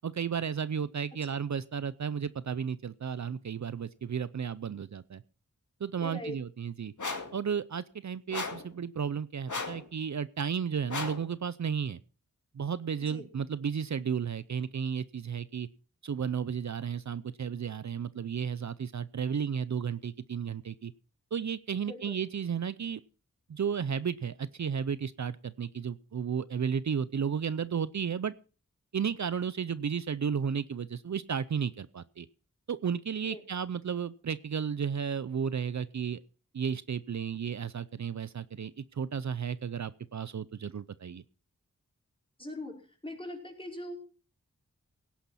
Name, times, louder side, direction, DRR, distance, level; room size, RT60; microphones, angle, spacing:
voice 1, 0.0-5.2 5.8-6.9 7.3-12.0 12.5-15.7 16.0-20.9 21.3-23.0 23.5-28.3 28.9-32.3 32.7-36.2 36.5-41.2, right 7 dB, 60° right, 16 dB, 0.6 m, -33 dB
voice 2, 6.0-6.3 13.0-13.2 21.8-22.2 33.3-33.4 42.4-42.8 43.0-44.0, left 1 dB, 15° left, 0 dB, 5.0 m, -41 dB
sound 1, 7.0-7.4 8.3-8.7 9.5-9.9 10.9-11.3, left 3 dB, 70° left, 2.2 m, -35 dB
17.0 x 10.5 x 4.2 m, 0.37 s
wide cardioid pair, 75°, 32 cm